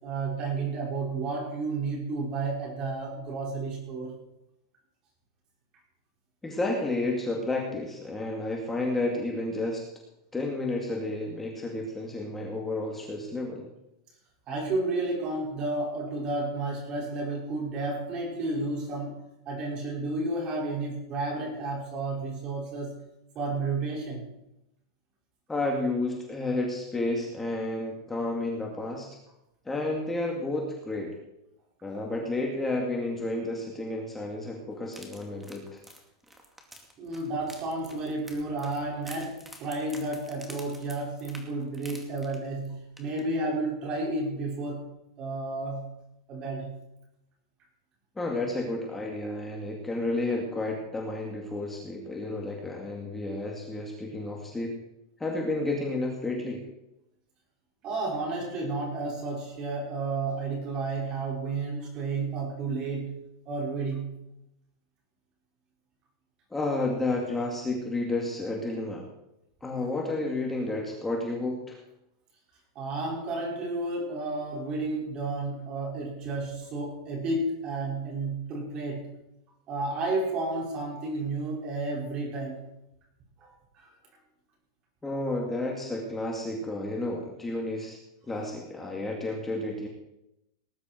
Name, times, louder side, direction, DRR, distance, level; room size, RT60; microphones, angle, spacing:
voice 1, 0.0-4.1 14.5-22.9 23.3-24.3 37.0-44.8 45.2-45.9 46.3-46.7 57.8-63.2 63.5-64.1 72.7-79.1 79.7-82.6 83.4-83.9, right 2 dB, 35° right, -1 dB, 5.9 m, -32 dB
voice 2, 6.4-9.8 10.3-13.7 25.5-29.1 29.7-31.1 31.8-35.8 48.2-54.8 55.2-56.6 66.5-69.0 69.6-71.8 85.0-88.0 88.3-89.9, left 2 dB, 10° left, -1 dB, 2.5 m, -31 dB
sound 1, 34.9-42.7 43.0-43.2 43.5-43.6, right 1 dB, 5° right, 2.3 m, -49 dB
19.0 x 10.5 x 4.6 m, 0.87 s
supercardioid pair, 135°, 2 cm